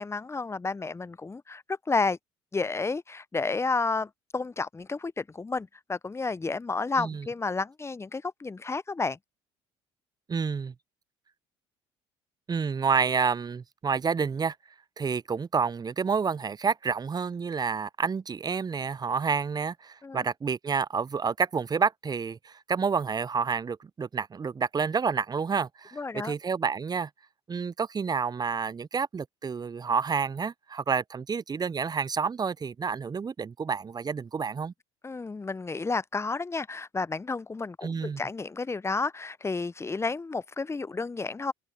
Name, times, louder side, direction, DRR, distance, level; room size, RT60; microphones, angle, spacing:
voice 1, 0.0-2.2 2.5-9.2 20.0-20.2 25.9-26.3 35.0-41.5, left 3 dB, 20° left, 0.7 m, -31 dB
voice 2, 10.3-10.7 12.5-14.6 15.0-27.1 27.5-34.7 37.8-38.2, right 5 dB, 25° right, 0.7 m, -29 dB
open air
hypercardioid pair, 60°, 15 cm